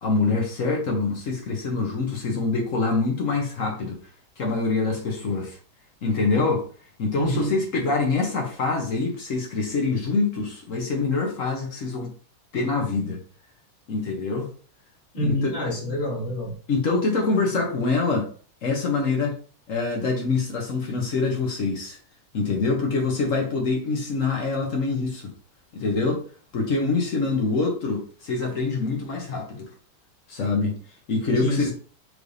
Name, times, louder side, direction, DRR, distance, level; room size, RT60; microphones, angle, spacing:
voice 1, 0.0-4.0 4.4-5.6 6.0-6.6 7.0-12.1 12.5-13.2 13.9-14.5 15.2-15.5 16.7-18.3 18.6-19.4 19.7-22.0 22.3-25.3 25.7-26.2 26.5-29.7 30.3-30.8 31.1-31.7, left 3 dB, 55° left, 0.9 m, -25 dB
voice 2, 7.2-7.5 15.1-16.5 31.4-31.7, equal, 30° left, 2.0 m, -27 dB
4.8 x 3.2 x 2.6 m
omnidirectional pair, 2.2 m